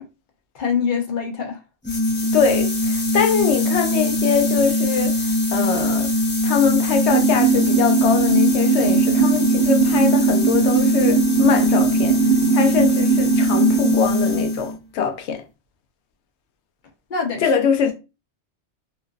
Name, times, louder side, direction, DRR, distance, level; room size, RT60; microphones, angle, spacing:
voice 1, 0.5-1.6 17.1-17.6, left 6 dB, 50° left, 0.8 m, -24 dB
sound 1, 1.8-14.8, left 1 dB, 20° left, 0.3 m, -21 dB
voice 2, 2.3-6.1 6.4-12.2 12.5-15.4 17.4-17.9, left 7 dB, 85° left, 0.9 m, -22 dB
sound 2, 7.1-14.0, right 8 dB, 55° right, 0.7 m, -20 dB
2.9 x 2.5 x 2.2 m
omnidirectional pair, 1.1 m